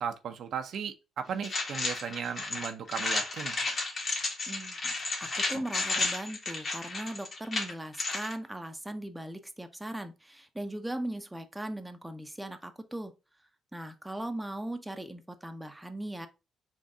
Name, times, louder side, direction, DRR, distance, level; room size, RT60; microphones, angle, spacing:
voice 1, 0.0-3.5, right 7 dB, 65° right, 0.6 m, -36 dB
sound 1, 1.4-8.3, left 3 dB, 45° left, 1.6 m, -32 dB
voice 2, 4.5-13.1 13.7-16.3, right 1 dB, 10° right, 0.6 m, -39 dB
4.0 x 2.5 x 3.5 m
cardioid pair, 90°, 0 cm